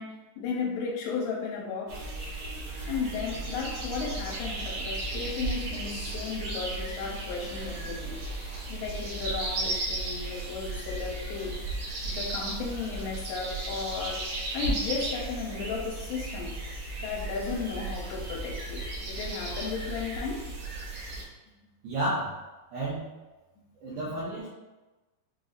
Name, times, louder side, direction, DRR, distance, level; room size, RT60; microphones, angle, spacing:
voice 1, 0.0-2.0 2.9-11.6 12.1-16.6 17.0-20.5, left 5 dB, 80° left, -1 dB, 2.8 m, -35 dB
sound 1, 1.9-21.2, right 2 dB, 65° right, 1.9 m, -35 dB
voice 2, 21.8-22.4 22.7-23.1 23.8-24.5, right 1 dB, 80° right, -7 dB, 2.2 m, -31 dB
6.5 x 2.6 x 2.4 m, 1.1 s
omnidirectional pair, 5.0 m